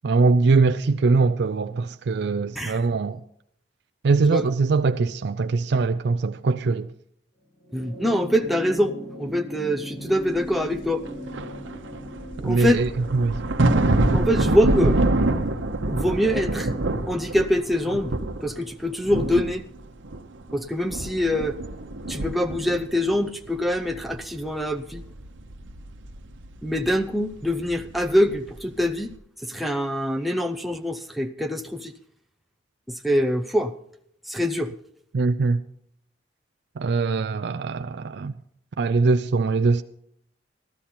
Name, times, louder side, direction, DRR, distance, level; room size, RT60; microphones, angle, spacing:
voice 1, 0.0-3.2 4.0-6.9 12.4-13.4 35.1-35.6 36.8-38.3 38.8-39.8, right 4 dB, 60° right, 0.4 m, -22 dB
sound 1, 7.6-16.3 17.5-17.6, equal, 30° left, 3.0 m, -39 dB
voice 2, 7.7-11.0 12.4-12.8 14.1-15.0 15.9-16.7 17.1-18.1 18.4-19.6 20.5-21.6 22.1-25.0 26.6-29.1 29.5-31.9 32.9-33.7 34.3-34.7, equal, ahead, 0.5 m, -24 dB
sound 2, 10.5-10.6 11.0-18.7 19.0-20.6 20.9-23.4 23.8-28.6 28.8-29.1, right 2 dB, 85° right, 0.9 m, -26 dB
14.0 x 13.0 x 4.3 m
head